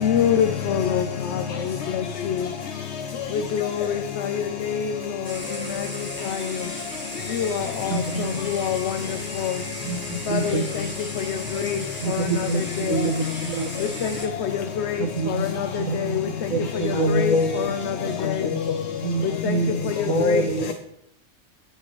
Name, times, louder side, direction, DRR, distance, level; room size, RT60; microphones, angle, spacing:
voice 1, 0.0-1.0 3.5-4.0 7.4-7.5 7.8-7.9 8.5-8.8 10.3-10.6 11.6-11.7 14.9-15.0 17.1-17.3 20.2-20.4, left 8 dB, 65° left, 7 dB, 0.9 m, -22 dB
sound 1, 5.2-14.3, equal, 10° right, 1.5 m, -37 dB
voice 2, 7.9-8.4 9.8-10.0 10.3-10.7 12.0-13.7 15.0-15.4 15.8-17.2 19.0-20.7, right 5 dB, 80° right, 10 dB, 1.1 m, -27 dB
voice 3, 16.9-18.1 18.4-18.9 20.1-20.7, left 2 dB, 85° left, 7 dB, 1.4 m, -25 dB
15.5 x 5.8 x 3.0 m, 0.77 s
omnidirectional pair, 1.3 m